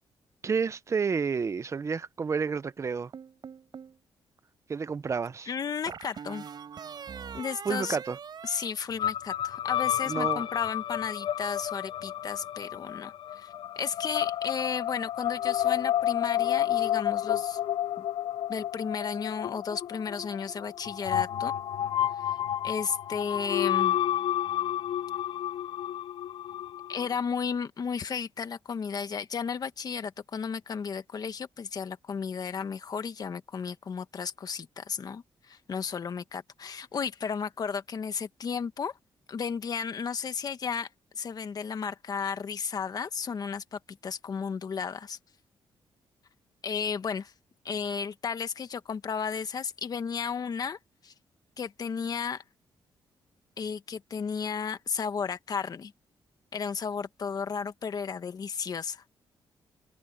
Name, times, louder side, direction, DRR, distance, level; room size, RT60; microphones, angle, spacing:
voice 1, 0.4-3.1 4.7-5.5 7.6-8.2 10.1-10.4, right 5 dB, 35° right, 0.7 m, -30 dB
sound 1, 3.1-4.0 5.9-9.5, right 7 dB, 55° right, 4.8 m, -43 dB
voice 2, 5.5-6.5 7.3-8.0 8.4-17.6 18.0-18.1 18.5-21.5 22.2-22.3 22.6-24.0 26.9-38.9 39.3-40.9 41.1-45.2 46.6-47.3 47.6-51.1 51.6-52.4 53.6-55.9 56.5-59.0, left 6 dB, 45° left, 1.4 m, -34 dB
sound 2, 9.0-27.1, left 11 dB, 70° left, 0.4 m, -30 dB
cardioid pair, 115°, 9 cm